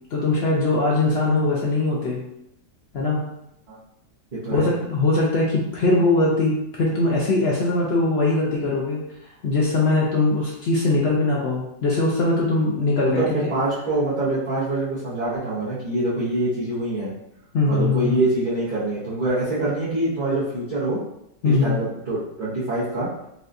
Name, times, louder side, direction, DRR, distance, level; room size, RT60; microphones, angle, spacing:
voice 1, 0.1-2.2 2.9-3.2 4.5-9.0 9.4-13.5 17.5-18.2 21.4-21.8, left 2 dB, 75° left, -4 dB, 0.5 m, -21 dB
voice 2, 4.3-4.7 13.0-17.1 17.7-21.0 21.4-23.1, right 2 dB, 35° right, -11 dB, 0.8 m, -25 dB
4.1 x 2.3 x 2.5 m, 0.81 s
omnidirectional pair, 1.8 m